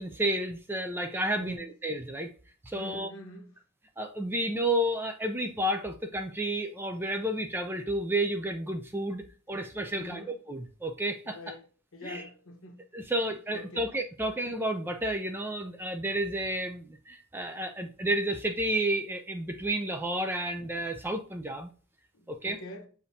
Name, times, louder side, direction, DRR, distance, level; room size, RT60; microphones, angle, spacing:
voice 1, 0.0-2.3 2.6-3.1 4.0-10.2 10.5-11.4 12.0-12.2 12.9-21.7 22.3-22.6, right 1 dB, 10° right, 0.3 m, -31 dB
voice 2, 1.3-1.7 2.7-3.5 9.9-10.4 11.2-11.6 11.9-12.8 13.1-13.2 13.5-13.9 22.1-22.9, left 1 dB, 65° left, 1.0 m, -44 dB
6.9 x 2.7 x 2.6 m
head